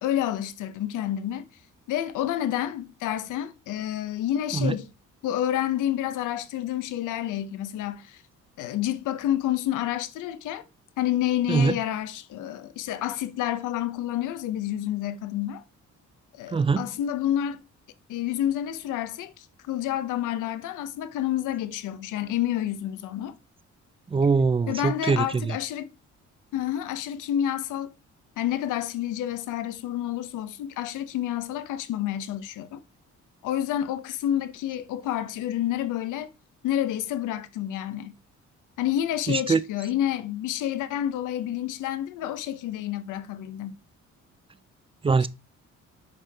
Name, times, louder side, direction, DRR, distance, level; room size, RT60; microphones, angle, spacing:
voice 1, 0.0-1.5 1.9-4.9 5.2-8.2 8.6-10.6 11.0-15.6 16.4-17.6 18.1-23.3 24.7-25.9 26.5-27.9 28.4-32.8 33.4-36.3 36.6-38.2 38.8-43.7 45.2-45.3, left 12 dB, 85° left, 0.7 m, -29 dB
voice 2, 16.5-16.8 24.1-25.2 39.3-39.6 45.0-45.3, right 4 dB, 20° right, 0.4 m, -22 dB
7.4 x 4.8 x 3.4 m
cardioid pair, 90°, 30 cm